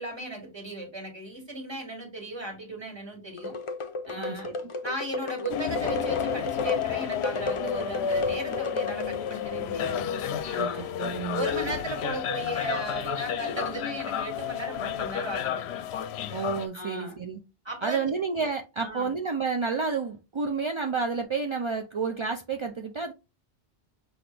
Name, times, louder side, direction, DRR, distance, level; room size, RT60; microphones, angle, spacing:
voice 1, 0.0-3.6 4.1-4.5 4.8-10.0 10.4-10.9 11.3-15.6 16.7-17.2 17.7-18.0 18.8-19.1, right 1 dB, 25° right, 1.9 m, -36 dB
sound 1, 3.4-9.4, left 3 dB, 35° left, 0.5 m, -33 dB
voice 2, 4.2-4.6 10.6-11.5 16.3-17.4 17.8-23.1, right 5 dB, 55° right, 0.3 m, -30 dB
sound 2, 5.5-16.7, left 9 dB, 75° left, 0.8 m, -31 dB
5.9 x 2.6 x 3.2 m
omnidirectional pair, 1.1 m